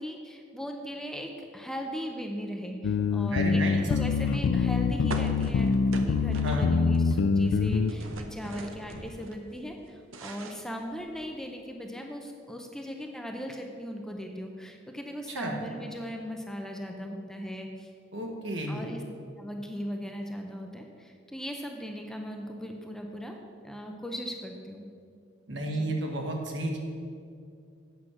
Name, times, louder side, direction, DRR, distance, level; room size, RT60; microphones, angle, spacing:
voice 1, 0.0-17.9 18.7-19.0 19.4-23.4 23.6-24.9 25.7-26.0, equal, 5° left, 2 dB, 0.6 m, -38 dB
sound 1, 2.8-7.9, left 5 dB, 85° left, 0.3 m, -25 dB
voice 2, 3.3-3.8 6.4-6.7 15.3-15.6 18.1-18.8 25.5-26.8, right 1 dB, 60° right, 1 dB, 1.4 m, -32 dB
sound 2, 5.1-7.0 7.2-9.4 9.8-11.3, right 2 dB, 80° right, 0.8 m, -42 dB
8.4 x 6.2 x 6.2 m, 2.4 s
head